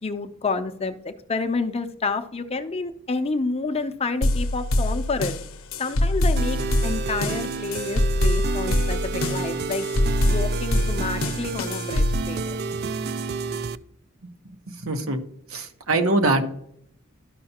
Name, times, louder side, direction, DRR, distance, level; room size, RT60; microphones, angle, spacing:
voice 1, 0.0-5.3 5.8-6.6 6.8-9.8 10.2-12.6, left 3 dB, 30° left, 8 dB, 0.6 m, -29 dB
sound 1, 4.2-12.2, left 1 dB, 70° left, 0.7 m, -24 dB
sound 2, 6.4-13.8, right 5 dB, 50° right, 0.3 m, -30 dB
voice 2, 14.2-15.2 15.5-16.5, right 2 dB, 90° right, 5 dB, 1.1 m, -24 dB
12.5 x 5.5 x 2.9 m, 0.69 s
head